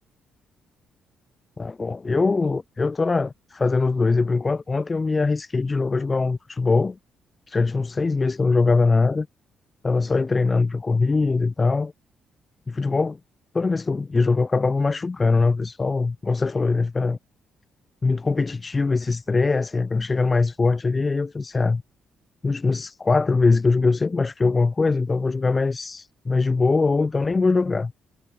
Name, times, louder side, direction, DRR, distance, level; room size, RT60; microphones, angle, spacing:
voice 1, 1.6-7.0 7.5-9.3 9.8-11.9 12.7-13.2 13.5-17.2 18.0-21.8 22.4-27.9, left 3 dB, 25° left, 5.3 m, -22 dB
cardioid pair, 90°, 0 cm